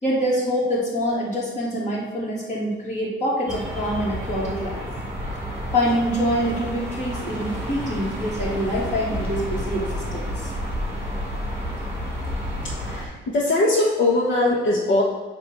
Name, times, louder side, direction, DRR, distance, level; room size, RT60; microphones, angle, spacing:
voice 1, 0.0-4.9 5.7-10.5, equal, 40° left, -5 dB, 2.5 m, -25 dB
sound 1, 3.5-13.0, equal, 10° right, 2.0 m, -30 dB
voice 2, 12.6-15.0, left 2 dB, 80° left, -5 dB, 1.3 m, -21 dB
8.5 x 3.0 x 6.3 m, 1.3 s
cardioid pair, 145°, 20 cm